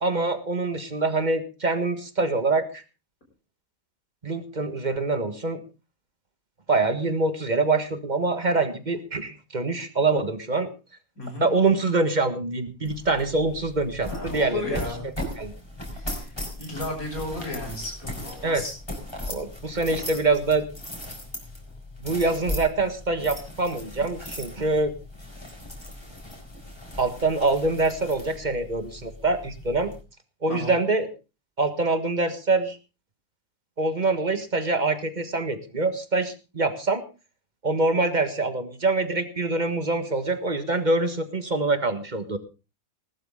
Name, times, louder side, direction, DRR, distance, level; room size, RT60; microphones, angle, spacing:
voice 1, 0.0-2.8 4.2-5.6 6.7-10.7 11.4-14.8 15.4-15.5 18.4-18.6 19.3-20.7 22.0-24.9 27.0-29.9 30.4-31.1 31.6-32.8 33.8-37.0 37.6-42.4, right 3 dB, 30° right, 9 dB, 1.6 m, -25 dB
voice 2, 11.2-11.5 14.0-15.1 15.9-18.8 30.5-30.8, left 2 dB, 75° left, 1 dB, 7.0 m, -34 dB
sound 1, 12.8-30.0, left 1 dB, 15° left, 4.3 m, -38 dB
19.0 x 12.5 x 3.7 m, 0.31 s
omnidirectional pair, 1.5 m